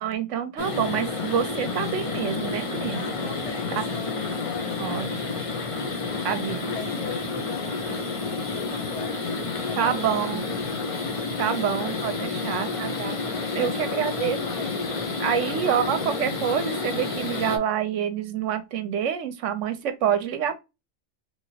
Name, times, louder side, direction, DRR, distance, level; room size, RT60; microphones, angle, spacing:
voice 1, 0.0-3.1 3.8-3.9 4.8-5.1 6.2-6.9 9.8-10.4 11.4-13.2 13.5-14.4 15.2-20.6, right 9 dB, 70° right, 0.9 m, -27 dB
sound 1, 0.6-17.6, left 3 dB, 45° left, 0.4 m, -30 dB
voice 2, 2.9-5.4 5.8-6.4 6.7-10.4 11.3-11.7 12.0-12.6 13.2-14.9, left 6 dB, 60° left, 1.2 m, -42 dB
3.1 x 2.8 x 2.7 m
omnidirectional pair, 1.4 m